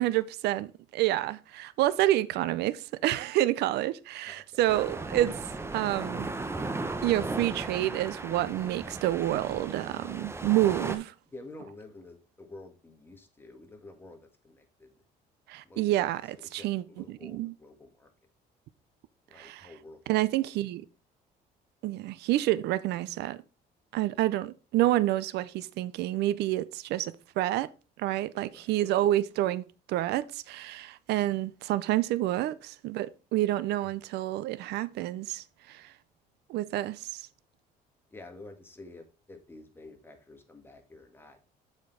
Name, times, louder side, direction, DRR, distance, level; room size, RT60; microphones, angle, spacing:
voice 1, 0.0-5.4 5.7-6.3 7.0-11.1 15.5-17.5 19.4-19.7 20.1-20.8 21.8-23.4 23.9-27.7 28.0-29.6 29.9-35.9 36.5-37.3, right 15 dB, 80° right, 0.5 m, -28 dB
voice 2, 4.3-4.6 11.3-14.9 15.6-16.0 16.3-18.1 19.3-20.3 24.8-24.9 28.5-28.8 38.1-41.4, left 2 dB, 15° left, 1.7 m, -50 dB
sound 1, 4.7-11.0, right 2 dB, 15° right, 0.8 m, -36 dB
7.3 x 4.5 x 4.5 m
cardioid pair, 110°, 17 cm